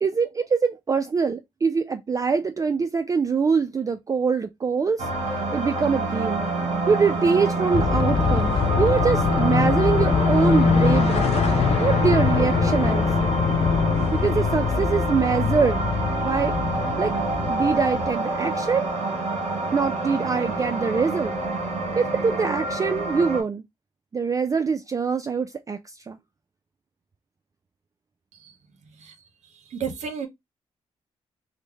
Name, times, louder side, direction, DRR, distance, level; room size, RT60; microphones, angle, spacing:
voice 1, 0.0-5.1 5.5-6.4 6.9-11.3 11.8-13.3 14.1-15.8 16.2-16.5 17.0-17.1 17.5-18.8 19.7-21.4 22.0-23.6 24.1-26.2, right 5 dB, 30° right, 0.3 m, -24 dB
sound 1, 5.0-23.4, right 3 dB, 60° right, 1.6 m, -27 dB
sound 2, 6.8-15.8, left 6 dB, 65° left, 0.8 m, -31 dB
sound 3, 7.7-18.1, left 5 dB, 45° left, 0.3 m, -23 dB
voice 2, 29.7-30.3, right 6 dB, 75° right, 0.8 m, -31 dB
3.2 x 2.1 x 3.3 m
cardioid pair, 65°, 12 cm